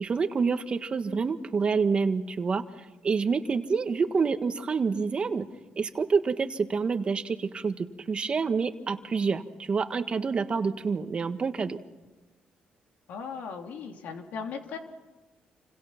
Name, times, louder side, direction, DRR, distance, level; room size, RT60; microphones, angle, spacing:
voice 1, 0.0-2.6 3.0-5.5 5.8-11.8, right 5 dB, 40° right, 8 dB, 1.5 m, -27 dB
voice 2, 13.1-14.8, left 6 dB, 80° left, 3 dB, 3.3 m, -37 dB
28.5 x 26.5 x 5.9 m, 1.1 s
cardioid pair, 105°, 3 cm